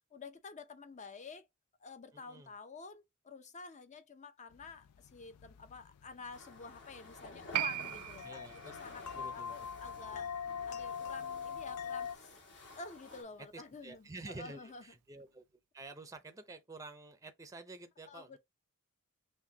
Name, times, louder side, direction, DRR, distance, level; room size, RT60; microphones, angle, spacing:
voice 1, 0.1-1.5 1.8-10.3 10.7-12.3 12.8-14.8 18.1-18.4, left 4 dB, 30° left, 0.6 m, -50 dB
voice 2, 2.1-2.5 8.2-8.7 9.1-9.7 10.1-10.6 13.5-15.4 15.7-18.4, right 2 dB, 15° right, 0.5 m, -50 dB
sound 1, 4.5-12.2, left 7 dB, 85° left, 0.4 m, -44 dB
sound 2, 6.3-13.2, left 3 dB, 55° left, 2.2 m, -54 dB
Piano, 7.5-14.5 14.7-14.8, right 13 dB, 85° right, 0.4 m, -43 dB
6.0 x 2.2 x 2.7 m
head